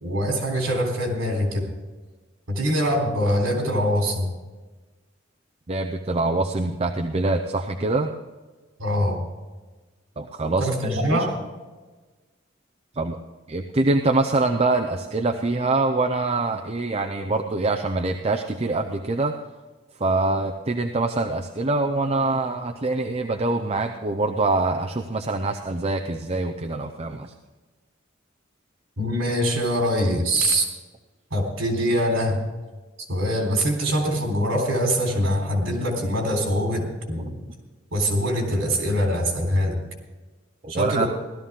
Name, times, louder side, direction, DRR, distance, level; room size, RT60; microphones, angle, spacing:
voice 1, 0.0-1.7 2.5-4.3 8.8-9.2 10.6-11.3 29.0-30.7 31.3-32.4 33.0-37.4 37.9-39.8 40.7-41.1, equal, 80° right, 1 dB, 3.6 m, -23 dB
voice 2, 5.7-8.1 10.2-11.3 13.0-13.2 13.5-19.3 20.0-27.3 40.6-41.1, right 2 dB, 30° right, 4 dB, 0.6 m, -24 dB
16.5 x 13.0 x 3.7 m, 1.3 s
head